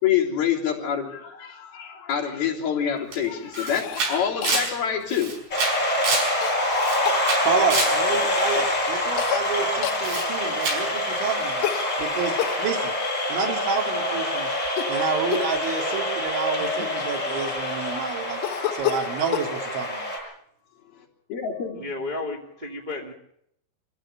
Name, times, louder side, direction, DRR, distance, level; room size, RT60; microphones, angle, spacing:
voice 1, 0.0-5.4 21.3-21.8, left 8 dB, 60° left, -3 dB, 5.3 m, -26 dB
Camera, 3.1-3.2 3.5-6.4 6.7-8.0 10.0-10.3 10.6-10.9, right 3 dB, 65° right, 7.3 m, -27 dB
Cough, 3.8-4.1 4.4-4.6 6.4-6.6 7.1-7.3 9.2-9.5 9.8-10.0 11.6-12.6 14.7-15.0 15.3-15.6 16.3-16.4 16.6-17.6 18.4-19.5, left 12 dB, 75° left, 3.0 m, -29 dB
sound 1, 5.5-20.2, left 1 dB, 25° left, 7.6 m, -26 dB
voice 2, 7.4-11.7 12.0-13.0 13.3-14.5 14.9-18.4 18.7-20.1, right 5 dB, 85° right, 2 dB, 5.2 m, -29 dB
voice 3, 21.7-23.1, left 2 dB, 15° right, 0 dB, 1.6 m, -32 dB
25.5 x 15.5 x 6.7 m, 0.72 s
omnidirectional pair, 5.2 m